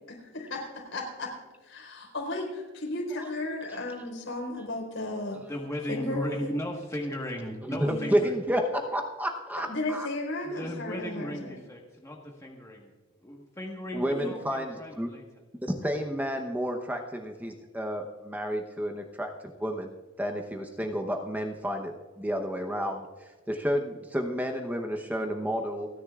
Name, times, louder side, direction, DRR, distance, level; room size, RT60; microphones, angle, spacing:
voice 1, 0.1-5.4 5.9-6.5 7.8-8.1 9.7-11.6 14.1-14.3, left 2 dB, 70° left, -1 dB, 4.7 m, -35 dB
voice 2, 5.3-8.3 10.4-12.9 13.2-15.2, equal, 15° left, 0 dB, 1.4 m, -36 dB
voice 3, 7.6-10.1 13.9-15.1 15.6-19.3 19.6-25.9, equal, 10° right, 3 dB, 0.9 m, -31 dB
30.0 x 10.0 x 2.4 m, 1.3 s
head